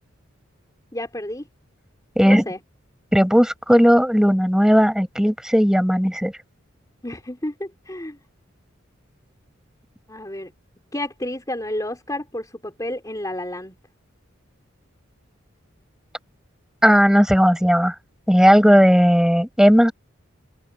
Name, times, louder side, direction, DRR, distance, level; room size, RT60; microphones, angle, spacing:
voice 1, 0.9-1.4 2.2-2.6 7.0-8.2 10.1-10.5 10.9-13.8, left 1 dB, 15° left, 4.0 m, -30 dB
voice 2, 3.1-6.3 16.8-17.9 18.3-19.9, equal, 5° right, 6.6 m, -16 dB
open air
head